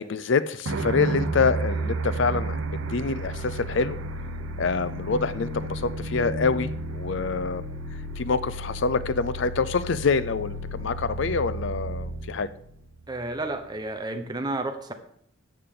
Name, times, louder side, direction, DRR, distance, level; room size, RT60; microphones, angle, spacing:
voice 1, 0.0-4.0 4.6-7.6 8.2-12.5, left 4 dB, 60° left, 15 dB, 0.5 m, -26 dB
sound 1, 0.7-13.4, right 2 dB, 85° right, 0.9 m, -32 dB
voice 2, 13.1-14.9, right 2 dB, 20° right, 6 dB, 1.0 m, -31 dB
13.5 x 8.7 x 3.8 m, 0.69 s
head